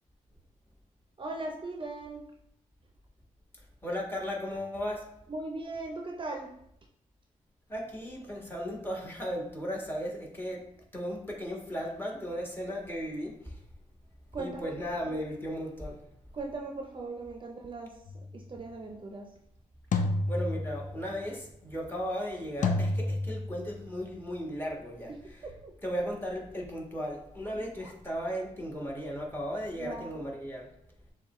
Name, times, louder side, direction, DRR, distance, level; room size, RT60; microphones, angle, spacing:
voice 1, 1.2-2.3 5.3-6.5 14.3-14.7 16.3-17.9 18.3-19.3 25.1-25.2 25.4-25.7 27.5-27.9 29.7-30.2, right 2 dB, 40° right, 2 dB, 0.6 m, -39 dB
voice 2, 3.8-5.0 7.7-10.6 10.9-13.3 14.4-16.0 20.3-25.4 25.8-30.7, equal, 15° left, -1 dB, 1.4 m, -36 dB
sound 1, 18.1-18.4 19.9-21.1 22.6-23.8, left 2 dB, 70° left, 0.5 m, -30 dB
6.8 x 2.3 x 3.1 m, 0.78 s
cardioid pair, 65°, 14 cm